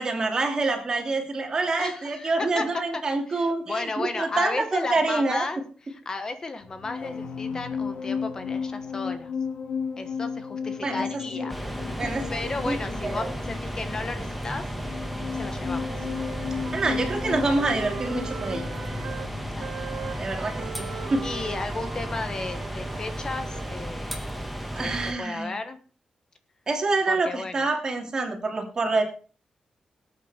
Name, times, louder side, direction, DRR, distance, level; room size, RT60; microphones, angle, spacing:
voice 1, 0.0-5.5 10.8-11.1 11.4-11.5 12.0-13.3 16.7-18.6 20.2-21.3 24.7-25.6 26.7-29.0, right 3 dB, 35° right, 3 dB, 2.9 m, -27 dB
voice 2, 1.8-2.6 3.3-5.6 5.9-9.3 10.0-11.6 11.9-14.6 15.3-15.9 19.5-19.7 20.1-24.4 24.8-25.8 27.1-27.7, left 3 dB, 30° left, 8 dB, 1.2 m, -34 dB
sound 1, 6.6-23.3 23.5-23.8, left 5 dB, 65° left, 2.5 m, -35 dB
sound 2, 11.5-25.1, equal, ahead, 1.7 m, -34 dB
Wind instrument woodwind instrument, 15.7-19.3 19.6-23.8, right 8 dB, 70° right, 1.2 m, -40 dB
19.0 x 9.0 x 4.4 m, 0.41 s
wide cardioid pair, 160°, 2 cm